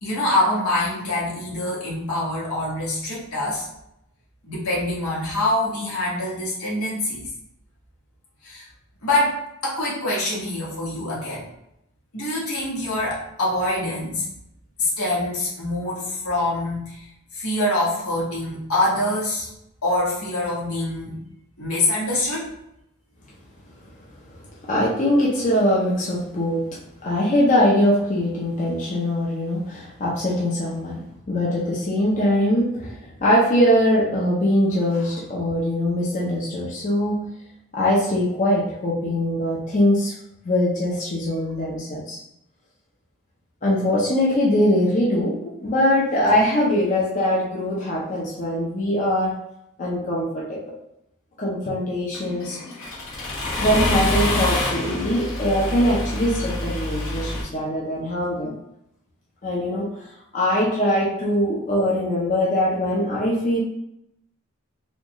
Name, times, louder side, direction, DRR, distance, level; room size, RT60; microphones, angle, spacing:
voice 1, 0.0-3.7 4.4-7.3 8.4-8.6 9.0-11.5 12.1-14.2 14.8-16.9 17.3-19.5 19.8-21.2 21.6-22.5, left 1 dB, 80° left, -6 dB, 1.5 m, -25 dB
voice 2, 24.3-37.3 37.7-40.1 40.4-42.2 43.6-49.4 49.8-50.7 51.4-52.6 53.6-58.5 59.4-59.9 60.3-63.6, left 1 dB, 35° left, -6 dB, 0.6 m, -22 dB
Accelerating revving vroom, 52.1-57.4, left 1 dB, 65° left, 1.2 m, -26 dB
4.2 x 2.4 x 3.0 m, 0.80 s
head